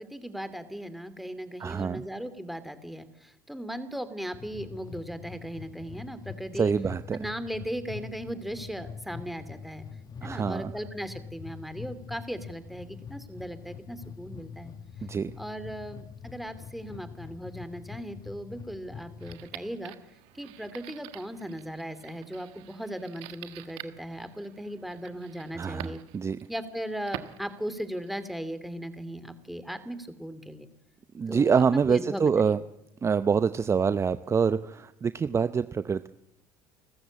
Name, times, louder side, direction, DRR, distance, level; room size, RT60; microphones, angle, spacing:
voice 1, 0.0-6.7 7.1-9.8 10.2-14.7 15.4-19.9 20.3-26.0 26.5-30.7 31.3-32.5, equal, ahead, 11 dB, 2.8 m, -37 dB
voice 2, 1.6-2.0 6.5-7.2 10.2-10.7 15.0-15.3 25.5-26.4 31.1-32.6 33.0-36.1, right 6 dB, 30° right, 14 dB, 0.7 m, -26 dB
sound 1, 4.3-19.5, left 6 dB, 40° left, 1.4 m, -44 dB
sound 2, 19.2-28.3, right 15 dB, 70° right, 1.5 m, -47 dB
28.5 x 14.5 x 8.6 m, 0.90 s
hypercardioid pair, 70°, 10 cm